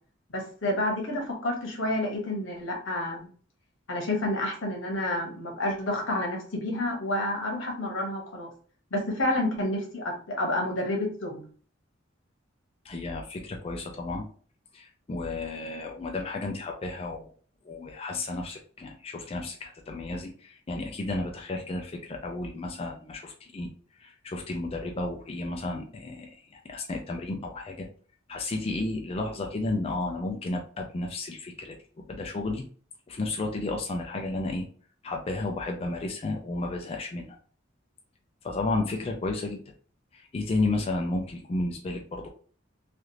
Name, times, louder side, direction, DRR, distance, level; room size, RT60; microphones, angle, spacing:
voice 1, 0.3-3.2 3.9-8.5 8.9-11.4, left 1 dB, 85° left, 1 dB, 1.1 m, -29 dB
voice 2, 12.8-14.3 14.7-17.3 17.6-23.7 24.0-27.9 28.3-31.8 32.1-32.6 33.1-34.7 35.0-37.4 38.4-39.6 40.1-42.3, left 2 dB, 30° left, 2 dB, 0.4 m, -32 dB
3.3 x 2.4 x 2.8 m, 0.43 s
head